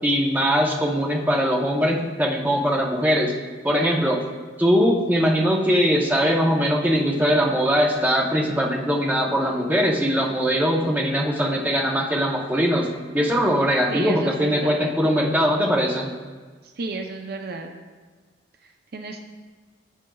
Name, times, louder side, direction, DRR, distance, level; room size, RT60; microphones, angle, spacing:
voice 1, 0.0-3.3 3.6-4.2 4.6-16.1, equal, 10° right, -2 dB, 0.8 m, -21 dB
voice 2, 13.9-14.8 16.6-17.7 18.6-19.3, right 3 dB, 55° right, 4 dB, 0.6 m, -32 dB
11.0 x 7.4 x 2.3 m, 1.4 s
head